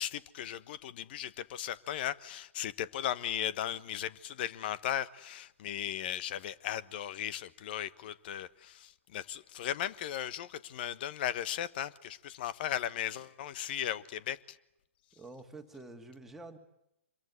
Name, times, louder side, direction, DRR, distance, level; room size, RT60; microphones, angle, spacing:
voice 1, 0.0-14.6, left 11 dB, 45° left, 1.3 m, -37 dB
voice 2, 15.1-16.6, right 2 dB, 5° right, 2.5 m, -48 dB
26.0 x 22.5 x 9.5 m
hypercardioid pair, 125°, 7 cm